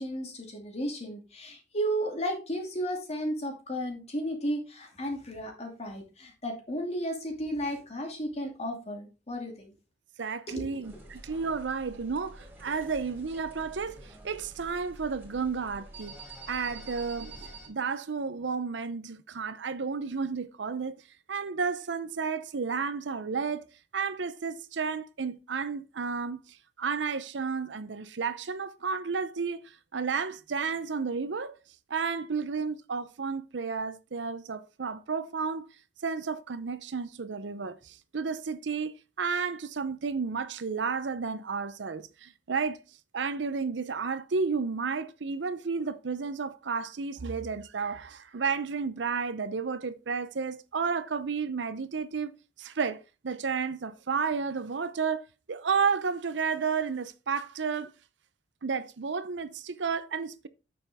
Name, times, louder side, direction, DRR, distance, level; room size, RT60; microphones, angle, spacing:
voice 1, 0.0-9.7 10.6-10.7, equal, 35° left, 2.5 m, -34 dB
voice 2, 10.2-16.2 16.5-21.0 21.3-23.7 23.9-31.6 31.9-35.7 36.0-42.8 43.1-57.9 58.6-60.5, right 5 dB, 80° right, 0.6 m, -32 dB
sound 1, 10.8-17.7, right 2 dB, 10° right, 3.1 m, -48 dB
9.0 x 6.9 x 3.5 m
head